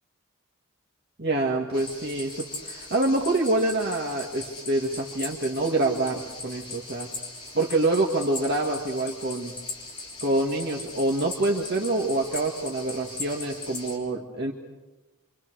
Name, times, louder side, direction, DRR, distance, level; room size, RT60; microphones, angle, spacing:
voice 1, 1.2-7.1 7.5-9.5 10.2-14.5, right 2 dB, 50° right, -1 dB, 2.2 m, -26 dB
sound 1, 1.7-14.0, left 3 dB, 20° left, 5.9 m, -39 dB
28.5 x 26.0 x 6.4 m, 1.1 s
head